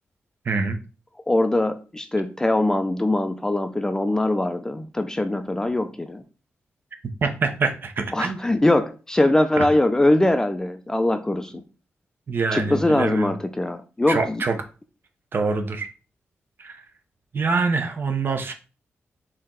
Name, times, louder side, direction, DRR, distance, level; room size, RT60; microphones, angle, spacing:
voice 1, 0.5-0.8 7.2-8.4 9.6-9.7 12.3-13.3 14.1-14.6 15.3-15.9 16.6-16.8 17.3-18.5, right 4 dB, 45° right, 0.7 m, -25 dB
voice 2, 1.3-6.2 8.1-11.6 12.5-14.4, left 1 dB, 15° left, 0.4 m, -22 dB
4.3 x 2.9 x 3.8 m
wide cardioid pair, 125°, 5 cm